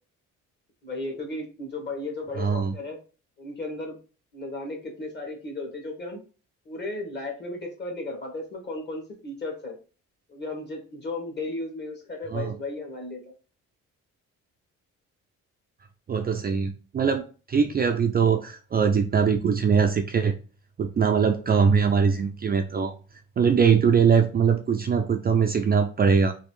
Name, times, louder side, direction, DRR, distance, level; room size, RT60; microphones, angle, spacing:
voice 1, 0.8-3.0 3.4-4.0 4.3-6.2 6.6-9.7 10.3-13.2, left 2 dB, 35° left, 1 dB, 1.3 m, -35 dB
voice 2, 2.4-2.7 12.3-12.5 16.1-17.2 17.5-20.3 20.8-22.9 23.4-26.3, right 6 dB, 30° right, 5 dB, 0.4 m, -22 dB
3.1 x 2.5 x 3.1 m, 0.35 s
cardioid pair, 90°, 30 cm